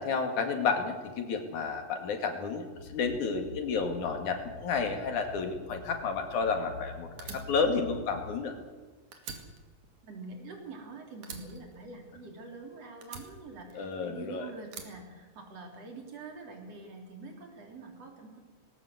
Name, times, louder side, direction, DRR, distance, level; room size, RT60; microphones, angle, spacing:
voice 1, 0.0-8.5 13.7-14.5, left 5 dB, 80° left, 5 dB, 3.7 m, -31 dB
sound 1, 2.7-8.4, left 3 dB, 60° left, 2.7 m, -46 dB
Fire, 7.2-8.8 9.1-10.9 11.2-12.6 13.0-14.2 14.7-15.8, right 5 dB, 75° right, 3.6 m, -46 dB
voice 2, 10.0-18.4, right 3 dB, 55° right, 2 dB, 4.6 m, -45 dB
20.0 x 18.0 x 8.0 m, 1.3 s
omnidirectional pair, 3.4 m